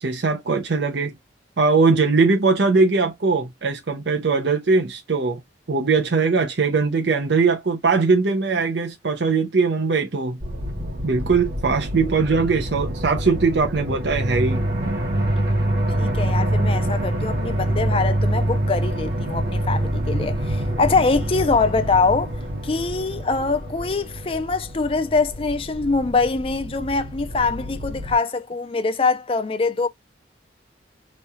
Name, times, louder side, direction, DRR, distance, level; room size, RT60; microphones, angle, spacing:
voice 1, 0.0-1.1 1.6-5.4 5.7-10.4 11.0-14.6, right 4 dB, 70° right, 0.7 m, -20 dB
sound 1, 10.4-28.2, right 1 dB, 50° right, 1.5 m, -26 dB
voice 2, 16.0-29.9, left 4 dB, 30° left, 0.4 m, -23 dB
3.1 x 2.3 x 4.1 m
head